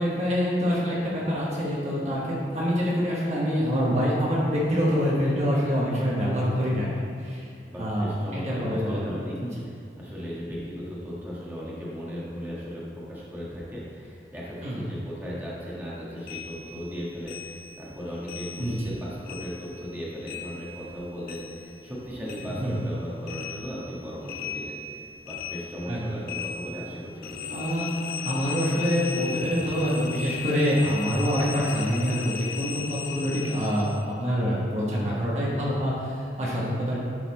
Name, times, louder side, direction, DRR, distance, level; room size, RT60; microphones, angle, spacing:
voice 1, 0.0-6.9 7.2-7.5 7.8-9.5 14.6-14.8 18.6-18.7 22.4-22.8 25.9-26.0 27.5-27.9 28.2-37.0, equal, 40° right, -6 dB, 1.2 m, -26 dB
voice 2, 7.6-24.8 25.2-27.6, equal, 10° right, -7 dB, 1.5 m, -37 dB
sound 1, 16.3-19.0 19.2-22.0 22.3-34.1, left 6 dB, 55° left, 0.4 m, -37 dB
11.0 x 4.1 x 4.1 m, 2.4 s
head